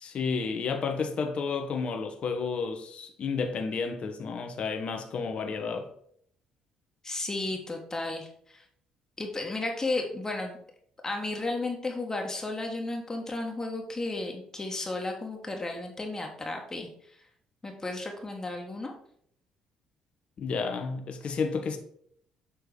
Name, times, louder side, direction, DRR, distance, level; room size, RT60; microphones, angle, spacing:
voice 1, 0.0-5.9 20.4-21.8, left 5 dB, 50° left, 0.9 m, -31 dB
voice 2, 7.0-8.6 9.2-10.6 11.0-16.9 17.6-18.9, left 2 dB, 25° left, 1.3 m, -33 dB
6.9 x 3.4 x 4.9 m
hypercardioid pair, 55°, 2 cm